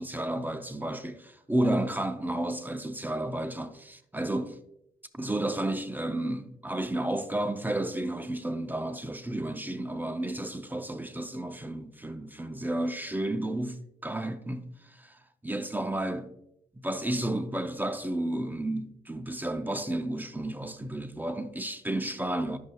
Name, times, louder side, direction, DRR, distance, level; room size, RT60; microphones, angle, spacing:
voice 1, 0.0-4.6 5.1-16.3 16.8-22.6, right 1 dB, 10° right, 0.4 m, -32 dB
10.5 x 6.3 x 2.2 m
wide cardioid pair, 115°, 16 cm